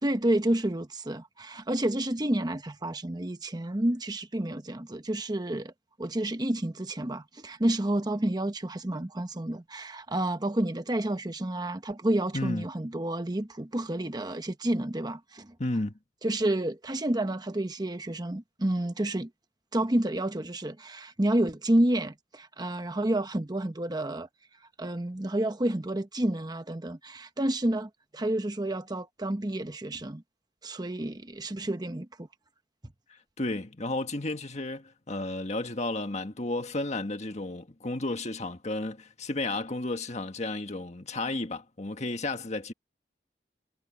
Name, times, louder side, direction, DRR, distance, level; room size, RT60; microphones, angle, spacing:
voice 1, 0.0-5.7 6.0-15.5 16.2-19.3 19.7-24.3 24.8-30.2 30.6-32.3, right 1 dB, 25° right, 1.0 m, -29 dB
voice 2, 12.3-12.6 15.6-15.9 33.1-42.7, left 2 dB, 40° left, 1.6 m, -33 dB
head